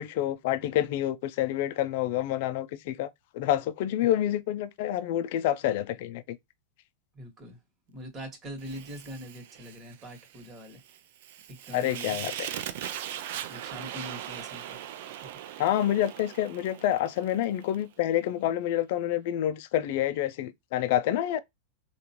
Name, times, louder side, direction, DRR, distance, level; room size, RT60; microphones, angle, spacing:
voice 1, 0.0-3.1 3.3-6.4 11.7-12.5 15.6-21.4, left 12 dB, 60° left, 0.4 m, -28 dB
voice 2, 7.1-7.6 7.9-11.0 11.5-12.5 13.5-15.6, right 1 dB, 30° right, 1.5 m, -43 dB
Fire, 8.6-17.8, right 11 dB, 65° right, 0.4 m, -40 dB
3.5 x 2.3 x 2.8 m
hypercardioid pair, 100°, 0 cm